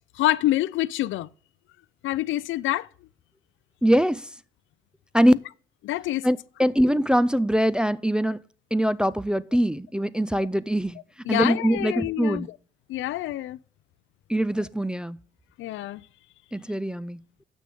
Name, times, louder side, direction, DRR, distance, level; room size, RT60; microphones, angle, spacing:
voice 1, 0.2-1.3 2.0-2.9 5.8-6.3 11.3-12.5 12.9-13.6 15.6-16.0, left 15 dB, 80° left, 0.4 m, -26 dB
voice 2, 3.8-4.3 5.1-5.3 6.2-8.4 8.7-11.0 11.3-12.5 14.3-15.2 16.5-17.2, equal, 5° right, 0.3 m, -23 dB
7.0 x 6.1 x 5.2 m
cardioid pair, 90°, 20 cm